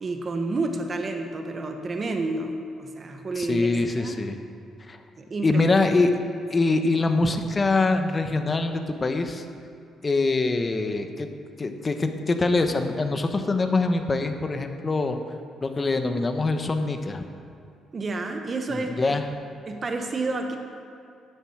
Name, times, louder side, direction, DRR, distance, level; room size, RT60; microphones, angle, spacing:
voice 1, 0.0-3.7 4.0-4.2 5.2-5.6 17.9-19.1 19.7-20.6, right 3 dB, 40° right, 4 dB, 1.1 m, -30 dB
voice 2, 3.4-4.4 4.9-5.0 5.4-6.1 6.5-9.4 10.0-11.3 11.6-15.2 15.6-17.2 18.7-19.2, left 3 dB, 30° left, 6 dB, 1.1 m, -24 dB
11.5 x 7.3 x 7.3 m, 2.5 s
cardioid pair, 90°, 0 cm